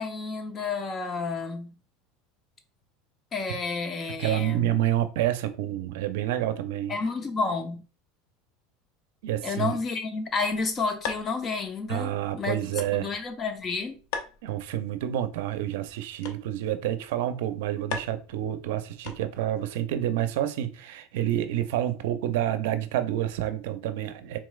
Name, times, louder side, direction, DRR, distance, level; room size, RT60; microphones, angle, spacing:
voice 1, 0.0-1.7 3.3-4.7 6.9-7.9 9.4-12.6 12.9-14.0, left 4 dB, 30° left, 0.7 m, -30 dB
voice 2, 4.2-7.0 9.2-9.8 11.9-13.1 14.4-24.4, right 12 dB, 80° right, 0.5 m, -28 dB
sound 1, 10.3-19.6, left 6 dB, 70° left, 0.6 m, -42 dB
3.7 x 3.1 x 2.3 m
supercardioid pair, 125°, 0 cm